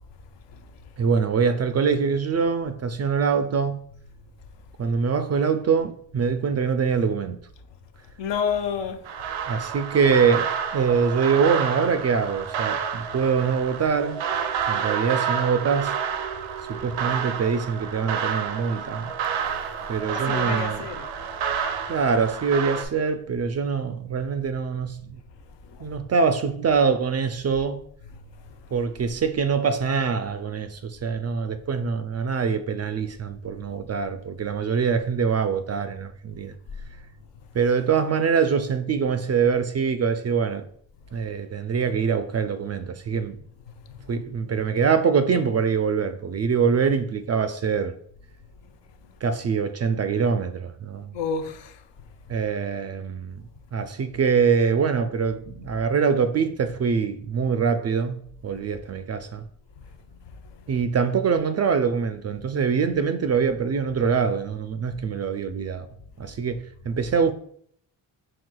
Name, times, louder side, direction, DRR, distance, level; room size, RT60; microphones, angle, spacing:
voice 1, 1.0-3.8 4.8-7.4 9.4-14.3 14.7-16.0 16.7-19.1 19.9-20.9 21.9-25.0 25.8-27.8 28.7-36.5 37.5-40.7 41.1-43.4 44.1-48.0 49.2-51.1 52.3-53.4 53.7-59.4 60.7-65.9 66.2-67.3, right 6 dB, 35° right, 0.4 m, -24 dB
voice 2, 8.2-9.0 19.4-19.6 20.1-21.1 21.5-21.7 25.7-25.9 28.1-28.2 51.1-51.8, left 6 dB, 65° left, 0.6 m, -30 dB
sound 1, 9.0-22.8, right 7 dB, 85° right, 0.6 m, -29 dB
4.7 x 3.6 x 2.2 m
supercardioid pair, 55°, 47 cm